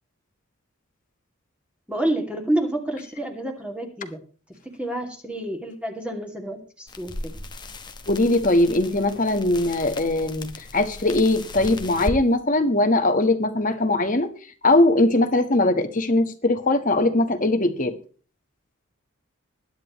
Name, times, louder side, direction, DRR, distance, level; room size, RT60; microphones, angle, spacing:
voice 1, 1.9-4.2 4.6-7.3, right 1 dB, 5° right, 2 dB, 2.5 m, -29 dB
sound 1, 6.9-12.2, left 1 dB, 20° left, 1.1 m, -36 dB
voice 2, 8.1-14.3 14.6-18.0, left 2 dB, 40° left, 7 dB, 1.4 m, -20 dB
21.0 x 10.0 x 3.2 m, 0.40 s
head